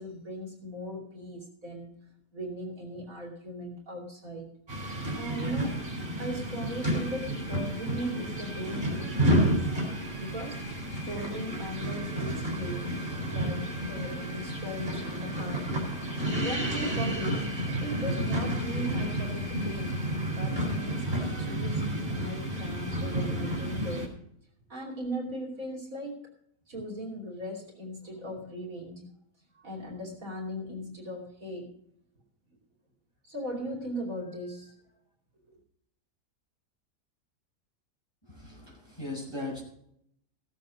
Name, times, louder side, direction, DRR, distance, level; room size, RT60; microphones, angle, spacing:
voice 1, 0.0-1.9 2.3-4.5 4.9-5.8 6.2-9.7 10.2-10.6 11.1-13.0 13.3-15.7 16.4-17.5 17.8-20.0 20.3-24.1 24.7-26.2 26.7-29.1 29.5-31.7 33.2-34.7 35.5-35.6, equal, 55° right, 0 dB, 3.2 m, -38 dB
sound 1, 4.7-24.1, right 1 dB, 25° right, 4.6 m, -31 dB
voice 2, 38.3-39.6, left 2 dB, 15° left, -2 dB, 5.2 m, -38 dB
16.5 x 7.8 x 5.2 m, 0.70 s
omnidirectional pair, 1.8 m